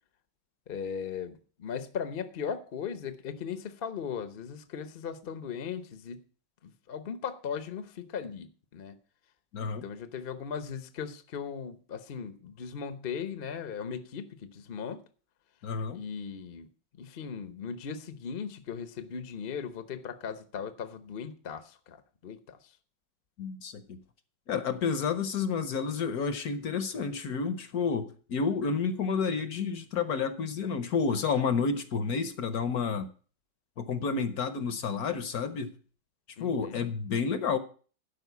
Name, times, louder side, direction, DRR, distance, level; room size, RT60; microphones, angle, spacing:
voice 1, 0.7-6.2 6.6-8.5 8.7-9.0 9.6-15.0 15.9-16.7 17.0-22.6 36.4-36.8, left 7 dB, 40° left, 0.8 m, -38 dB
voice 2, 9.5-9.9 15.6-16.0 23.4-24.0 24.5-33.1 33.8-35.7 36.4-37.6, left 5 dB, 60° left, 1.2 m, -30 dB
12.0 x 5.2 x 8.1 m
omnidirectional pair, 1.9 m